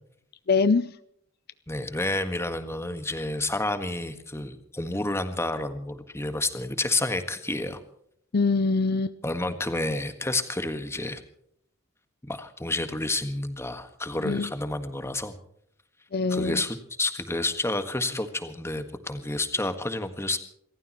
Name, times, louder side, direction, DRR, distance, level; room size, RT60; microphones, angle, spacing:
voice 1, 0.5-0.9 8.3-9.2 14.2-14.5 16.1-16.6, left 4 dB, 55° left, 14 dB, 0.5 m, -23 dB
voice 2, 1.7-7.8 9.2-11.2 12.2-15.3 16.3-20.4, left 2 dB, 15° left, 8 dB, 1.6 m, -30 dB
28.5 x 14.5 x 3.1 m, 0.71 s
head